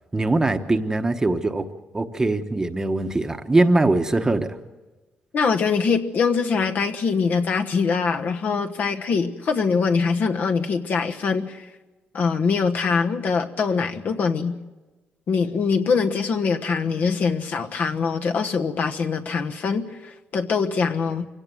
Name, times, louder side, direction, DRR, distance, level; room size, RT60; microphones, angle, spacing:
voice 1, 0.1-1.7 1.9-4.6, right 2 dB, 15° right, 8 dB, 1.1 m, -21 dB
voice 2, 5.3-11.6 12.1-14.6 15.3-21.3, left 5 dB, 55° left, 6 dB, 1.2 m, -23 dB
25.0 x 17.0 x 7.8 m, 1.2 s
cardioid pair, 145°, 4 cm